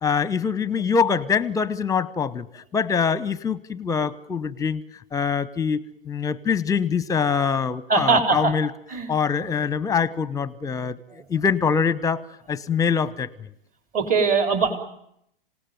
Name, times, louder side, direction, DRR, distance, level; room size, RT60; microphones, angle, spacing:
voice 1, 0.0-2.5 2.7-4.8 5.1-8.7 9.1-11.0 11.3-12.2 12.5-13.3, left 6 dB, 10° left, 20 dB, 0.9 m, -24 dB
voice 2, 7.9-8.5 8.9-9.1 13.9-14.8, right 4 dB, 30° right, 7 dB, 4.0 m, -21 dB
27.0 x 18.0 x 9.2 m, 0.73 s
hypercardioid pair, 115°, 29 cm